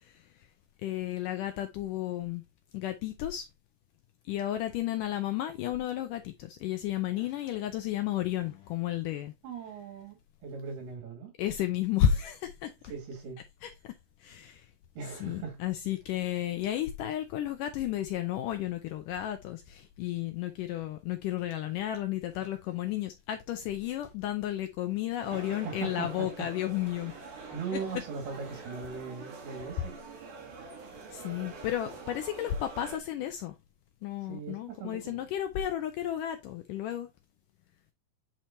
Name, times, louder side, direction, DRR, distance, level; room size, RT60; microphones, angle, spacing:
voice 1, 0.8-2.4 2.7-3.5 4.3-9.3 11.4-12.7 13.6-13.7 14.2-14.6 15.2-27.1 31.1-33.5 34.0-37.1, left 11 dB, 85° left, 1.8 m, -32 dB
voice 2, 9.4-10.2 10.4-11.3 12.8-13.4 15.0-15.6 25.3-26.5 26.9-29.9 34.2-35.3, right 5 dB, 75° right, 4.3 m, -40 dB
sound 1, 25.2-33.0, right 4 dB, 60° right, 3.3 m, -45 dB
8.6 x 4.5 x 2.7 m
omnidirectional pair, 4.6 m